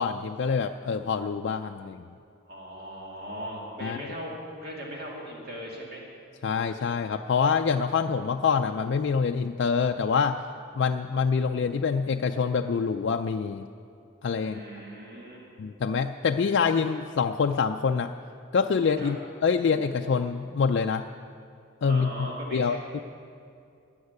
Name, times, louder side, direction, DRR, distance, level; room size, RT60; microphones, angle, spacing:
voice 1, 0.0-2.1 3.8-4.2 6.4-10.4 10.8-13.7 14.2-14.6 15.6-18.1 18.5-21.1 21.8-23.0, left 5 dB, 55° left, 4 dB, 0.3 m, -26 dB
voice 2, 2.4-6.0 14.4-15.7 19.0-19.1 21.8-23.0, equal, 45° right, -3 dB, 2.4 m, -39 dB
13.0 x 8.0 x 9.6 m, 2.5 s
head